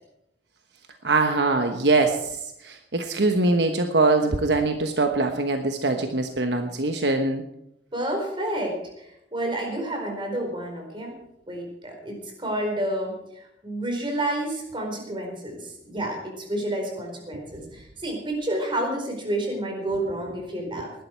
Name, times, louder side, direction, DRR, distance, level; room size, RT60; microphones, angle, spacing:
voice 1, 1.0-2.4 2.6-7.4, right 3 dB, 70° right, 5 dB, 1.2 m, -22 dB
voice 2, 7.9-11.2 11.5-21.0, right 1 dB, 30° right, 2 dB, 4.6 m, -30 dB
19.5 x 12.0 x 4.6 m, 0.79 s
head